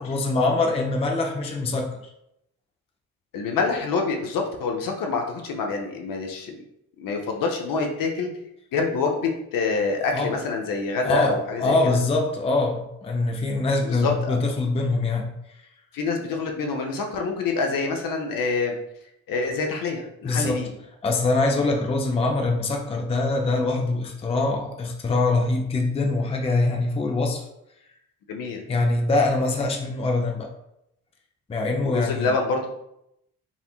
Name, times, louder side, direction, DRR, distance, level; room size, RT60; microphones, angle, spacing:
voice 1, 0.0-2.0 10.1-10.4 11.0-15.3 20.2-20.6 21.0-27.4 28.7-30.5 31.5-32.3, left 2 dB, 15° left, 2 dB, 0.5 m, -23 dB
voice 2, 3.3-6.6 7.0-8.3 8.7-11.8 13.8-14.3 15.9-18.8 19.3-20.7 28.3-28.6 31.8-32.7, left 4 dB, 50° left, 2 dB, 0.7 m, -26 dB
4.2 x 2.7 x 2.3 m, 0.80 s
figure-of-eight pair, 45°, 44 cm